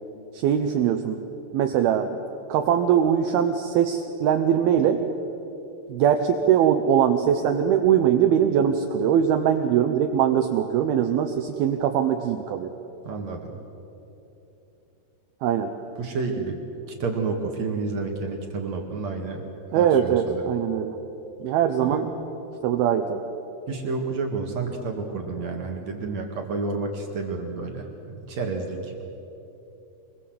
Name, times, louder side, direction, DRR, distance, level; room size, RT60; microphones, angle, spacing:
voice 1, 0.3-1.2 1.5-2.2 2.5-5.0 5.9-12.7 15.4-15.7 19.7-21.0 21.4-22.1 22.6-23.2, right 9 dB, 80° right, 5 dB, 2.2 m, -21 dB
voice 2, 13.0-13.5 16.0-16.6 16.9-19.4 19.7-20.4 21.8-22.1 23.7-29.0, right 4 dB, 55° right, 2 dB, 2.1 m, -30 dB
25.0 x 21.5 x 7.7 m, 3.0 s
omnidirectional pair, 5.5 m